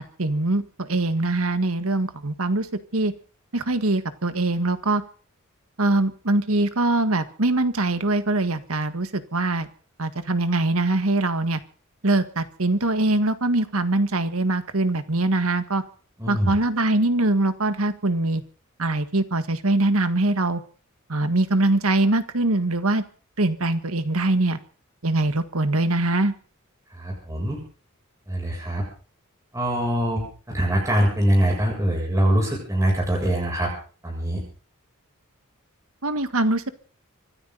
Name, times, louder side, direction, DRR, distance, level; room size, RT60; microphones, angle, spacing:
voice 1, 0.2-2.7 2.9-3.1 3.5-5.0 5.8-9.7 10.0-11.6 12.0-15.8 16.3-18.4 18.8-20.6 21.1-23.0 23.4-24.6 25.0-26.3 36.0-36.7, right 2 dB, 75° right, 11 dB, 1.7 m, -22 dB
voice 2, 16.2-16.5 26.9-27.6 28.3-28.9 29.5-33.7 34.0-34.4, equal, 15° right, -1 dB, 7.4 m, -23 dB
25.5 x 13.0 x 4.1 m, 0.41 s
head